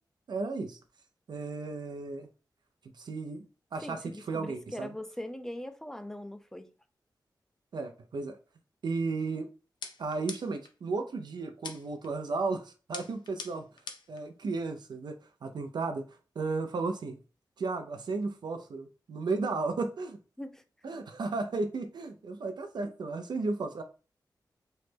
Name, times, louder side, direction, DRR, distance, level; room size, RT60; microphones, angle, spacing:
voice 1, 0.3-0.8 1.3-2.3 2.9-3.4 3.7-4.9 7.7-8.4 8.8-9.5 10.0-13.7 14.1-17.2 17.6-20.2 20.8-23.8, right 3 dB, 70° right, 0.4 m, -34 dB
voice 2, 3.8-6.7 20.4-20.6, left 1 dB, 5° left, 0.4 m, -41 dB
sound 1, 9.8-10.7 11.6-12.1 12.9-14.2, left 5 dB, 75° left, 0.5 m, -43 dB
3.1 x 2.0 x 3.2 m
wide cardioid pair, 80°, 8 cm